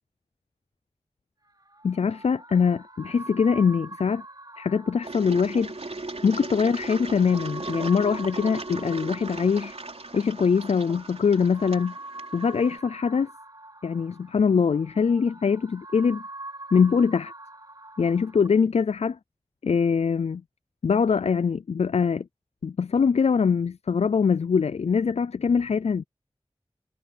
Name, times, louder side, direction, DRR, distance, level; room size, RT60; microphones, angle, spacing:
sound 1, 1.5-18.5, right 2 dB, 40° right, 5.2 m, -44 dB
voice 1, 1.8-4.2 4.6-5.7 6.2-9.7 10.1-11.9 12.3-13.3 13.8-16.2 16.7-17.3 18.0-19.2 19.6-20.4 20.8-22.3 22.6-26.0, left 6 dB, 80° left, 0.4 m, -23 dB
Engine, 5.0-12.8, right 3 dB, 75° right, 4.3 m, -37 dB
wide cardioid pair, 40°, 11 cm